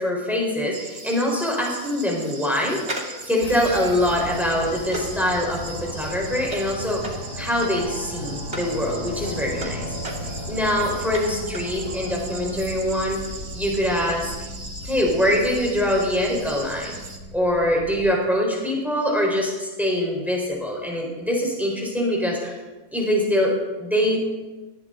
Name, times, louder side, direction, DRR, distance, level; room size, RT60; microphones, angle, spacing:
voice 1, 0.0-2.8 3.3-9.9 10.2-13.2 13.5-14.3 14.8-17.0 17.3-22.6 22.9-23.5 23.8-24.2, left 1 dB, ahead, -2 dB, 4.2 m, -24 dB
sound 1, 0.7-17.2, right 3 dB, 75° right, 2.4 m, -39 dB
sound 2, 2.8-8.8 9.1-11.8 12.0-12.1, right 1 dB, 45° right, 2.8 m, -37 dB
sound 3, 3.4-18.1, left 1 dB, 60° left, 2.3 m, -36 dB
20.5 x 14.5 x 3.9 m, 1.2 s
omnidirectional pair, 1.6 m